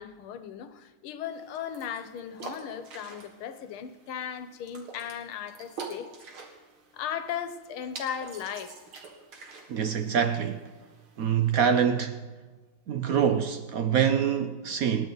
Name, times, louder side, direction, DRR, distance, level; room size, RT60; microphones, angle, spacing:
voice 1, 0.0-6.1 6.9-8.8, left 8 dB, 85° left, 1.8 m, -37 dB
sound 1, 1.3-11.8, right 4 dB, 90° right, 2.7 m, -47 dB
voice 2, 9.7-10.6 11.2-12.2 12.9-15.1, right 8 dB, 70° right, 0.8 m, -25 dB
28.0 x 10.5 x 3.9 m
omnidirectional pair, 2.3 m